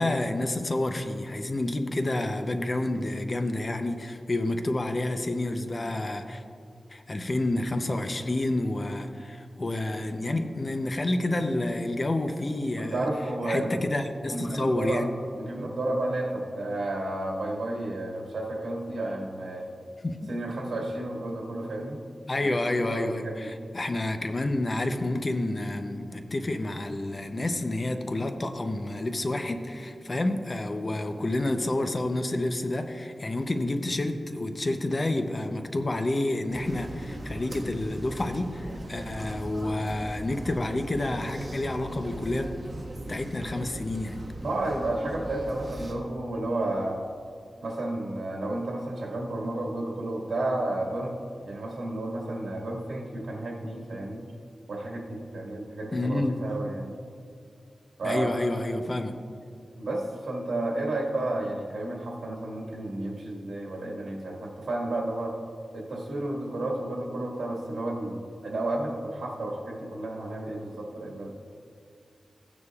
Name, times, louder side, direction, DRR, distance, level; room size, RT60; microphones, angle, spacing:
voice 1, 0.0-6.4 6.9-13.0 13.5-15.1 20.0-20.3 22.3-42.5 43.0-44.2 55.9-56.3 58.0-59.1, left 2 dB, 35° left, 7 dB, 0.6 m, -29 dB
voice 2, 12.8-13.7 14.3-15.1 15.3-19.6 20.3-22.0 22.4-23.5 44.4-47.0 47.6-51.2 51.5-54.3 54.7-56.9 58.0-58.4 59.8-65.3 65.7-71.3, right 1 dB, 85° right, -2 dB, 1.7 m, -32 dB
sound 1, 36.5-45.9, right 1 dB, 40° right, 1.4 m, -39 dB
15.5 x 9.5 x 2.4 m, 2.3 s
wide cardioid pair, 120°, 0 cm